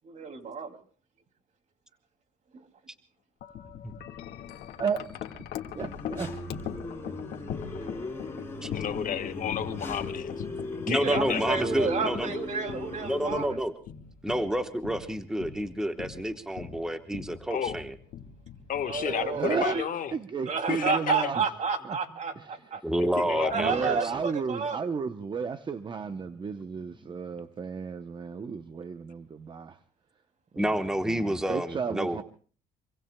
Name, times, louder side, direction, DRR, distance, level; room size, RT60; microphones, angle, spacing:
voice 1, 0.1-0.7 11.0-13.6 18.8-19.9 20.4-22.8 23.5-24.8, right 5 dB, 45° right, 2.6 m, -31 dB
Wind chime, 3.4-19.6, left 9 dB, 75° left, 1.7 m, -41 dB
voice 2, 5.7-6.4 19.2-19.8 20.1-21.5 21.8-22.0 22.4-22.7 23.5-29.8 30.5-32.2, right 5 dB, 30° right, 0.7 m, -33 dB
sound 1, 5.8-13.5, left 2 dB, 15° left, 5.9 m, -38 dB
voice 3, 8.7-10.4 10.7-11.5 17.5-17.8 18.7-20.1 20.7-21.3 23.0-23.6, left 9 dB, 50° left, 1.3 m, -32 dB
voice 4, 10.9-12.3 13.0-13.7 14.2-17.8 22.8-24.0 30.6-32.2, equal, 5° right, 1.1 m, -29 dB
26.0 x 24.0 x 2.2 m
cardioid pair, 110°, 17 cm